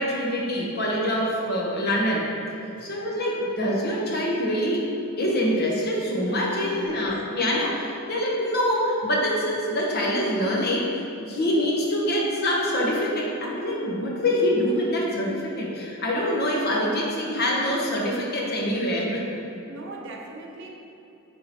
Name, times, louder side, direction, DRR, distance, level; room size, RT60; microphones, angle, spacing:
voice 1, 0.0-2.3 2.8-4.9 5.2-19.3, equal, 45° left, -2 dB, 1.0 m, -25 dB
voice 2, 6.6-7.1 19.7-20.7, right 2 dB, 55° right, 0 dB, 0.7 m, -39 dB
9.5 x 3.7 x 3.0 m, 2.9 s
head